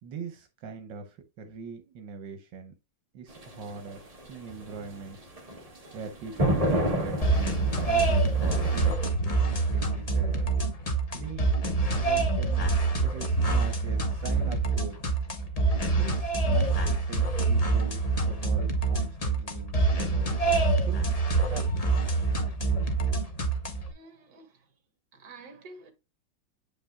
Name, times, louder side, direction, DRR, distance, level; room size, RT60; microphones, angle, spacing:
voice 1, 0.0-2.7 3.1-4.0 4.3-5.3 5.9-10.5 11.1-11.5 12.0-15.0 15.8-21.7, right 5 dB, 85° right, 1.6 m, -42 dB
sound 1, 3.3-8.9, right 1 dB, 20° right, 1.6 m, -30 dB
sound 2, 7.2-23.9, right 3 dB, 30° left, 0.7 m, -26 dB
voice 2, 23.9-24.7 25.1-25.9, right 3 dB, 55° right, 2.1 m, -49 dB
8.7 x 5.4 x 2.2 m
omnidirectional pair, 2.0 m